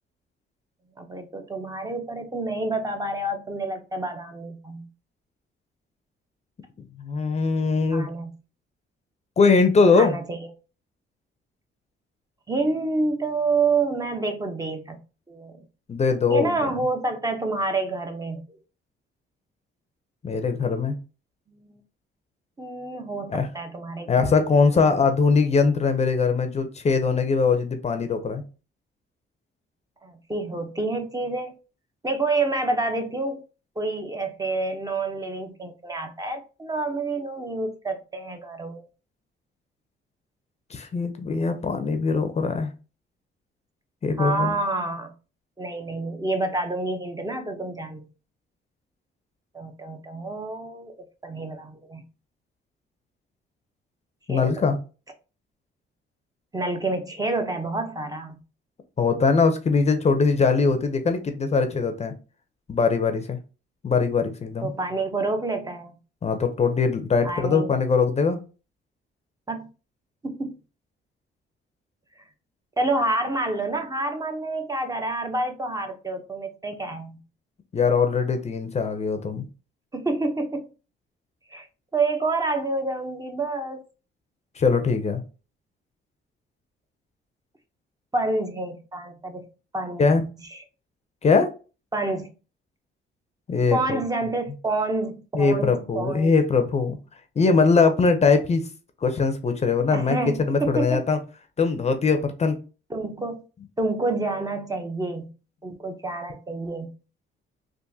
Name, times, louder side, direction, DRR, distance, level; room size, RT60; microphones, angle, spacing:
voice 1, 1.0-4.9 7.9-8.3 9.9-10.5 12.5-15.0 15.3-15.6 16.3-18.4 22.6-25.0 30.0-31.6 32.0-33.4 33.8-38.8 44.2-45.1 45.6-48.1 49.5-50.9 51.2-52.0 54.3-54.5 56.5-58.4 64.6-65.9 67.2-67.7 69.5-69.7 70.2-70.5 72.8-77.2 79.9-80.7 81.5-81.7 81.9-83.8 88.1-89.4 89.7-90.1 90.5-90.6 91.9-92.3 93.7-96.3 99.9-101.0 102.9-103.4 103.8-105.3 105.6-106.9, right 2 dB, 20° right, 0.6 m, -28 dB
voice 2, 7.0-8.1 9.4-10.2 15.9-16.5 20.2-21.0 23.3-23.5 24.1-28.4 40.7-42.7 44.0-44.6 54.3-54.8 59.0-62.1 62.7-63.4 63.8-64.7 66.2-68.4 77.7-79.5 84.6-85.2 90.0-90.2 91.2-91.5 93.5-94.0 95.3-97.0 97.4-98.6 99.0-100.2 100.5-101.2 101.6-102.6, left 4 dB, 35° left, 0.5 m, -21 dB
3.6 x 2.5 x 2.7 m
cardioid pair, 90°, 20 cm